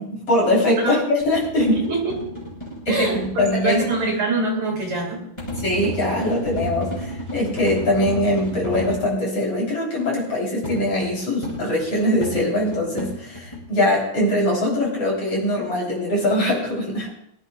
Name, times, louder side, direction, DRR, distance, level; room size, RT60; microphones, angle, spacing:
voice 1, 0.0-1.8 2.9-3.8 5.6-17.1, left 1 dB, 40° left, -3 dB, 4.1 m, -22 dB
sound 1, 1.2-4.1 5.4-9.1 10.6-13.6, equal, 10° left, 4.1 m, -32 dB
voice 2, 1.6-2.2 2.9-5.2, right 3 dB, 50° right, 0 dB, 3.4 m, -24 dB
23.0 x 12.0 x 2.3 m, 0.70 s
omnidirectional pair, 4.2 m